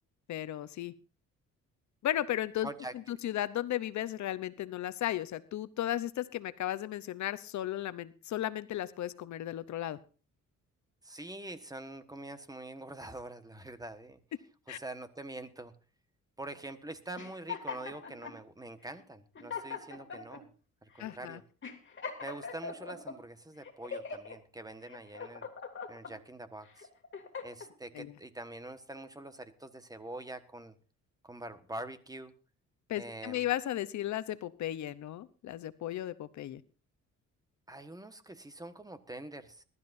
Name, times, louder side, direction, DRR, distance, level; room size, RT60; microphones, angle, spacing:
voice 1, 0.3-0.9 2.0-2.7 3.1-10.0 14.7-14.8 21.0-21.4 27.9-28.1 32.9-36.6, left 13 dB, 70° left, 15 dB, 0.8 m, -35 dB
voice 2, 2.6-2.9 11.0-14.2 14.7-15.7 16.4-20.5 20.8-21.4 22.2-25.5 25.9-26.9 27.4-30.8 31.2-32.3 33.0-33.5 37.7-39.6, right 1 dB, 10° right, 10 dB, 1.4 m, -45 dB
sound 1, 17.2-18.4 19.0-19.1 19.4-20.4 21.0-21.2 21.6-23.2 23.6-24.4 24.9-26.1 26.7-27.7, left 5 dB, 40° left, 2.7 m, -41 dB
21.5 x 12.5 x 2.6 m, 0.37 s
cardioid pair, 90°, 30 cm